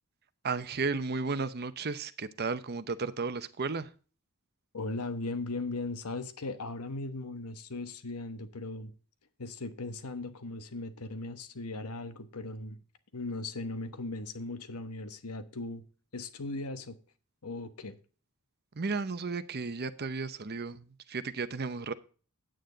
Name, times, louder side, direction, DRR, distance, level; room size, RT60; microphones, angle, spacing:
voice 1, 0.4-3.9 18.7-21.9, right 4 dB, 45° right, 0.8 m, -34 dB
voice 2, 4.7-8.9 9.4-12.8 13.1-15.8 16.1-17.0 17.4-18.0, left 2 dB, 85° left, 1.2 m, -38 dB
9.1 x 9.1 x 3.9 m
head